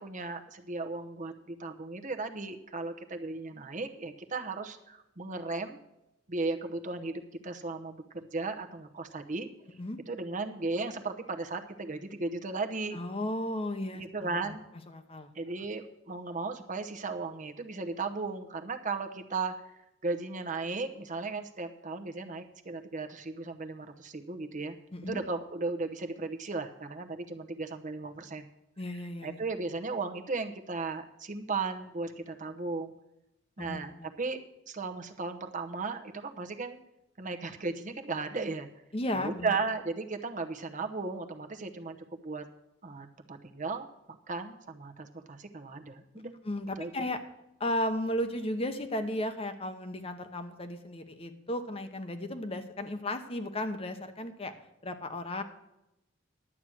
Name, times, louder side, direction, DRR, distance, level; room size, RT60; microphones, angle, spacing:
voice 1, 0.0-5.8 6.3-9.5 10.1-13.0 13.9-14.6 15.3-19.5 20.0-24.7 25.1-28.5 29.2-32.9 33.6-33.9 34.2-34.4 34.7-36.8 37.2-38.7 39.1-42.0 42.2-42.4 42.8-43.9 44.3-46.3 46.8-46.9, right 3 dB, 40° right, 6 dB, 0.9 m, -36 dB
voice 2, 12.9-14.6 14.9-15.3 24.9-25.2 28.8-29.4 33.6-33.8 38.9-39.6 46.4-47.2 47.6-54.5 54.8-55.4, left 1 dB, 30° left, 8 dB, 0.9 m, -34 dB
11.0 x 7.9 x 6.1 m, 0.90 s
head